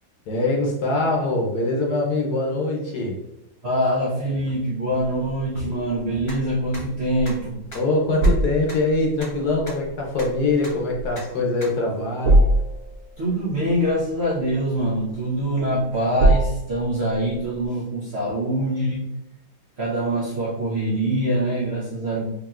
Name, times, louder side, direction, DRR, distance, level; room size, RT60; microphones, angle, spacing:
voice 1, 0.3-3.2 7.7-12.5, left 2 dB, 65° left, -1 dB, 1.2 m, -23 dB
voice 2, 3.6-7.7 13.2-19.0 19.8-22.2, right 1 dB, 65° right, -5 dB, 0.6 m, -24 dB
sound 1, 6.3-6.4 6.7-6.8 7.3-7.4 7.7-7.8 8.2-8.3 8.7-8.8 9.2-9.3 9.7-9.8 10.2-10.3 10.6-10.7 11.2-11.3 11.6-11.7, left 1 dB, 35° left, 1.1 m, -36 dB
sound 2, 8.2-17.7, right 1 dB, 10° right, 1.0 m, -25 dB
5.0 x 2.9 x 2.4 m, 0.90 s
omnidirectional pair, 2.1 m